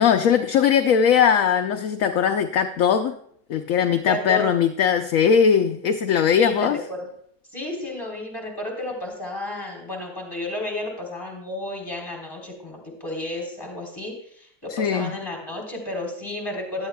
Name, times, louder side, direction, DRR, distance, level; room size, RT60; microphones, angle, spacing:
voice 1, 0.0-3.2 3.5-6.8 14.7-15.1, left 7 dB, 65° left, 6 dB, 0.9 m, -20 dB
voice 2, 4.0-4.4 6.3-7.1 7.5-16.9, left 1 dB, 15° left, 1 dB, 3.3 m, -32 dB
16.0 x 11.0 x 2.3 m, 0.66 s
omnidirectional pair, 1.8 m